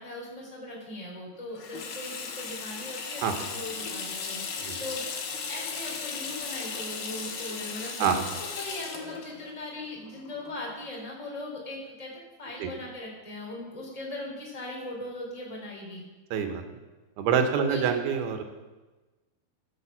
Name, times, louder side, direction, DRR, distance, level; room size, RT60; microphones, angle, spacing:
voice 1, 0.0-4.4 4.8-8.1 8.4-12.1 12.4-16.0 17.7-17.8, left 1 dB, 10° left, -2 dB, 2.9 m, -39 dB
Water tap faucet / Sink (filling or washing), 1.6-10.9, left 5 dB, 70° left, 3.1 m, -37 dB
voice 2, 16.3-16.6 17.2-18.4, right 7 dB, 80° right, 6 dB, 3.1 m, -26 dB
12.5 x 7.5 x 7.3 m, 1.2 s
omnidirectional pair, 4.4 m